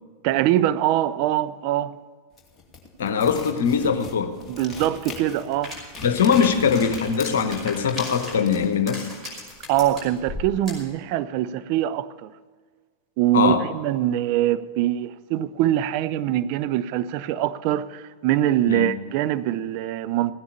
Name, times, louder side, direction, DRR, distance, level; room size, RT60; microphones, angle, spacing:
voice 1, 0.2-2.0 4.5-5.8 9.7-12.3 13.2-20.3, right 12 dB, 45° right, 0.5 m, -23 dB
sound 1, 2.3-8.6, left 4 dB, 15° left, 2.6 m, -41 dB
voice 2, 3.0-4.4 6.0-9.1 13.3-13.7 18.7-18.9, left 6 dB, 60° left, 1.1 m, -21 dB
sound 2, 5.6-10.9, left 1 dB, 10° right, 5.5 m, -37 dB
16.0 x 9.8 x 7.0 m
figure-of-eight pair, 90°, 0 cm